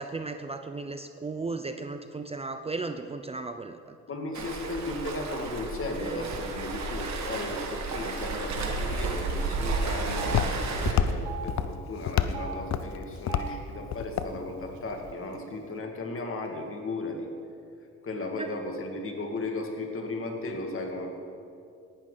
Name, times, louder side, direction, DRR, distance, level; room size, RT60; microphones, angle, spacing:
voice 1, 0.0-4.0 6.0-6.3 18.4-18.5, right 3 dB, 20° right, 8 dB, 0.6 m, -35 dB
voice 2, 4.1-17.3 18.0-21.1, left 2 dB, 45° left, 2 dB, 2.2 m, -35 dB
Waves surf, 4.3-10.9, right 3 dB, 65° right, 1.8 m, -32 dB
Telephone, 7.3-7.5 7.7-7.9 8.8-8.9 9.2-9.3 10.0-10.4 11.1-11.4 12.2-12.5 13.2-13.5 14.3-14.4 14.7-15.4, right 9 dB, 85° right, 1.5 m, -40 dB
Walk footsteps, 8.9-15.1, left 9 dB, 65° left, 0.7 m, -31 dB
18.5 x 11.0 x 4.0 m, 2.5 s
cardioid pair, 90°, 30 cm